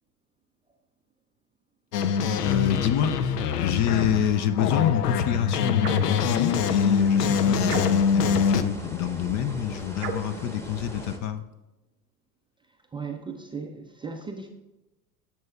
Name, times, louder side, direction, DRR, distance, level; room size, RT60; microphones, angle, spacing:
sound 1, 1.9-8.6, left 6 dB, 85° left, 0.6 m, -24 dB
voice 1, 2.4-11.4, left 10 dB, 40° left, 11 dB, 0.5 m, -27 dB
sound 2, 5.8-6.2 7.7-8.2 10.0-10.4, right 7 dB, 85° right, 0.7 m, -35 dB
sound 3, 6.1-11.2, equal, 5° left, 1.0 m, -39 dB
voice 2, 12.9-14.5, right 5 dB, 10° right, 3 dB, 0.4 m, -36 dB
10.5 x 7.1 x 2.3 m, 1.0 s
hypercardioid pair, 80°, 46 cm